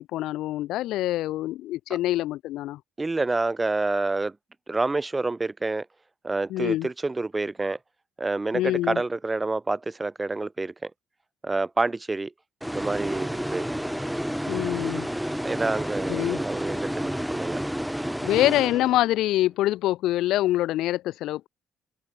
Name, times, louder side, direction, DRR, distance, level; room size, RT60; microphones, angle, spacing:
voice 1, 0.0-2.8 6.5-6.9 8.5-9.0 14.5-15.1 16.1-16.4 18.2-21.5, left 15 dB, 75° left, 1.6 m, -25 dB
voice 2, 3.0-4.3 4.7-5.8 6.2-7.8 8.2-10.9 11.4-12.3 12.7-13.7 15.4-17.6, right 3 dB, 20° right, 1.1 m, -28 dB
sound 1, 12.6-19.3, equal, ahead, 0.5 m, -30 dB
supercardioid pair, 80°, 0 cm